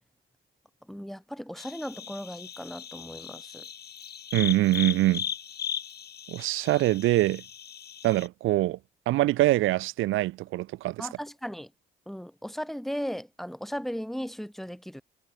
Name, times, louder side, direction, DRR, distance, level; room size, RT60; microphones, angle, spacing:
voice 1, 0.9-3.7 11.0-11.7 12.1-15.0, equal, ahead, 2.2 m, -36 dB
sound 1, 1.6-8.3, left 8 dB, 55° left, 2.5 m, -38 dB
voice 2, 4.3-5.3 6.3-7.4 8.0-8.8 9.1-11.1, right 17 dB, 85° right, 0.8 m, -24 dB
cardioid pair, 90°, 20 cm